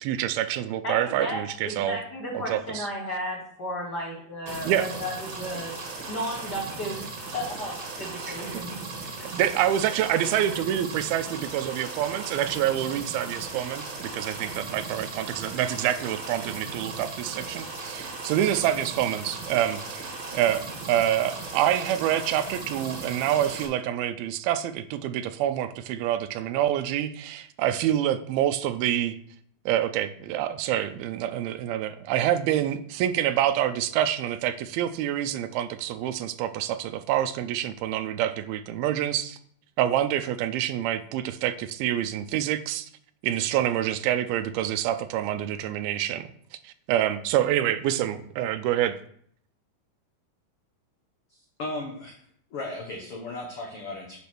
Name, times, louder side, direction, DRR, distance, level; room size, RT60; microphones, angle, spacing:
voice 1, 0.0-2.0 2.3-2.9 4.7-4.9 8.2-8.6 9.3-29.2 29.7-39.4 39.8-42.9 43.2-46.3 46.6-49.0, right 11 dB, 85° right, 12 dB, 2.4 m, -27 dB
voice 2, 0.8-5.7 6.1-7.1 7.3-8.8 9.1-9.3, equal, 40° left, -3 dB, 1.7 m, -34 dB
sound 1, 4.5-23.7, right 3 dB, 50° right, 1.6 m, -37 dB
voice 3, 51.6-52.1 52.5-54.2, left 2 dB, 75° left, 0 dB, 1.3 m, -35 dB
8.4 x 4.4 x 6.0 m, 0.62 s
omnidirectional pair, 4.3 m